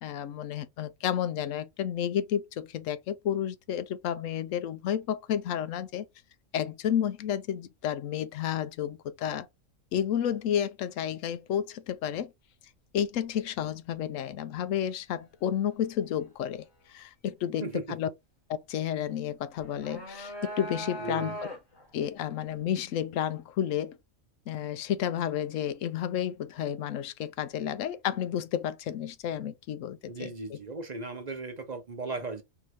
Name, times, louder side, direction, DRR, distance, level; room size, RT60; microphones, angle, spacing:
voice 1, 0.0-6.1 6.5-9.5 9.9-12.3 12.9-18.1 18.5-21.5 21.9-24.0 24.5-30.6, left 9 dB, 75° left, 0.9 m, -31 dB
voice 2, 17.6-18.0 21.0-21.4 30.1-32.4, right 3 dB, 40° right, 0.6 m, -37 dB
sound 1, 19.6-21.9, right 1 dB, 55° left, 1.7 m, -39 dB
4.5 x 2.8 x 3.1 m
omnidirectional pair, 1.4 m